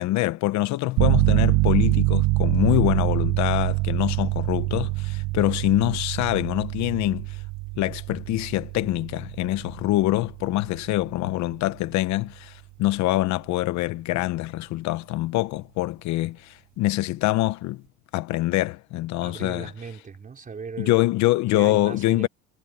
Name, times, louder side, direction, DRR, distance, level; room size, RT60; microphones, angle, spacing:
voice 1, 0.0-7.4 7.8-17.8 18.1-19.7 20.8-22.3, left 17 dB, 65° left, 1.1 m, -25 dB
sound 1, 1.0-11.5, right 24 dB, 65° right, 0.4 m, -25 dB
voice 2, 19.2-21.0 21.5-22.3, right 5 dB, 25° right, 4.5 m, -37 dB
cardioid pair, 115°, 31 cm